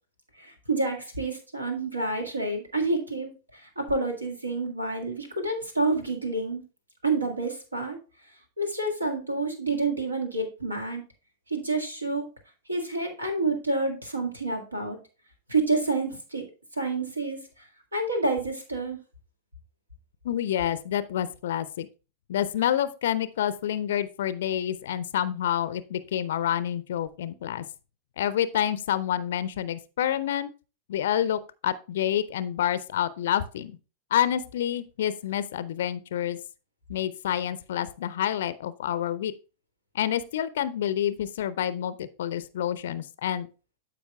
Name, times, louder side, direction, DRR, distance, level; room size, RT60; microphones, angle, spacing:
voice 1, 0.4-6.6 7.0-8.0 8.6-11.0 11.5-12.3 12.7-15.0 15.5-16.5 16.7-17.6 17.9-19.0, right 3 dB, 80° right, 4 dB, 1.7 m, -28 dB
voice 2, 20.2-21.9 22.3-27.6 28.2-30.5 30.9-33.8 34.1-36.4 36.9-39.3 39.9-43.5, left 10 dB, 60° left, 16 dB, 0.4 m, -28 dB
12.5 x 5.1 x 2.3 m, 0.33 s
figure-of-eight pair, 90°, 0 cm